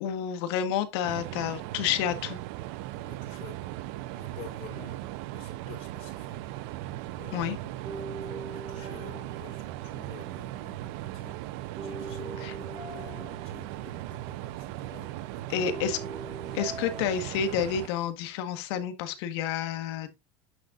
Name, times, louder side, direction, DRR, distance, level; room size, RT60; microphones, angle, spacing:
voice 1, 0.0-2.4 7.3-7.6 12.4-12.5 15.5-16.0 16.5-20.1, left 8 dB, 70° left, 1.6 m, -29 dB
sound 1, 1.0-17.9, right 15 dB, 65° right, 0.7 m, -38 dB
voice 2, 3.0-3.8 4.1-6.4 7.2-15.8 16.5-16.6, left 4 dB, 40° left, 4.4 m, -49 dB
sound 2, 7.8-10.4 11.8-14.2 15.6-18.1, right 3 dB, 25° right, 2.4 m, -42 dB
9.5 x 6.3 x 2.6 m
supercardioid pair, 135°, 14 cm